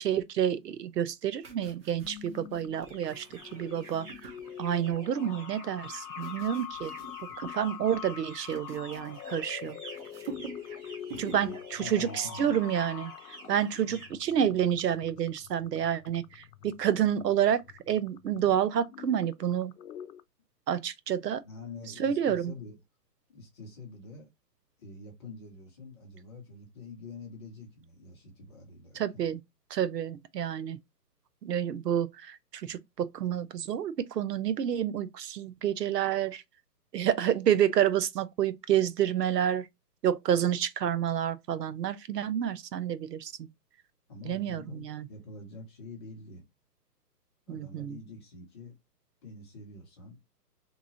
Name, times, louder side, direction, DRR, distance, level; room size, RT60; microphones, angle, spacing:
voice 1, 0.0-4.3 4.6-6.9 7.4-9.8 11.2-19.7 20.7-21.4 22.0-22.5 28.9-29.4 29.7-30.8 31.4-36.4 36.9-39.7 40.0-43.5 44.2-45.1 47.5-48.0, right 9 dB, 80° right, 0.7 m, -29 dB
sound 1, 1.4-5.3 5.9-7.7 8.0-9.7 10.0-10.8 11.0-11.5 11.9-12.1, right 4 dB, 35° right, 1.0 m, -47 dB
sound 2, 2.0-20.2, left 10 dB, 90° left, 0.6 m, -45 dB
sound 3, 2.7-14.1, right 3 dB, 20° right, 1.3 m, -51 dB
voice 2, 10.8-12.6 13.7-14.0 21.4-22.8 23.3-24.3 24.8-29.3 44.1-44.8 45.1-46.4 47.5-48.8 49.2-50.2, left 3 dB, 15° left, 0.7 m, -46 dB
3.5 x 3.0 x 2.8 m
hypercardioid pair, 155°, 49 cm